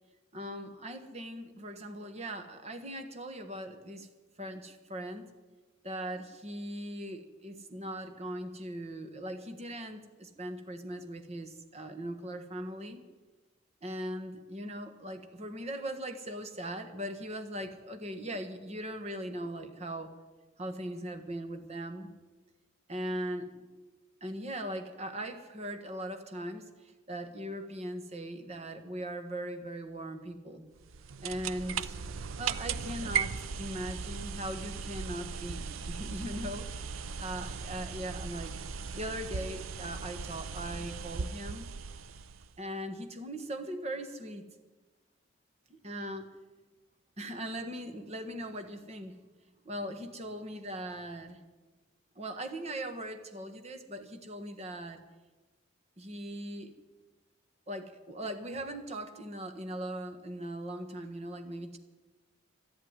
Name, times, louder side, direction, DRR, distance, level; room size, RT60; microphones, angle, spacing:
voice 1, 0.3-4.1 4.4-5.3 5.8-13.0 13.8-20.1 20.6-22.1 22.9-23.6 24.2-30.7 31.2-32.0 32.4-38.6 38.9-41.7 42.6-44.4 45.7-46.3 47.2-49.2 49.6-51.4 52.1-55.0 56.0-56.7 57.7-61.8, right 1 dB, 35° right, 7 dB, 1.4 m, -39 dB
sound 1, 30.8-42.6, right 6 dB, 85° right, 0.6 m, -38 dB
13.0 x 11.0 x 9.6 m, 1.3 s
head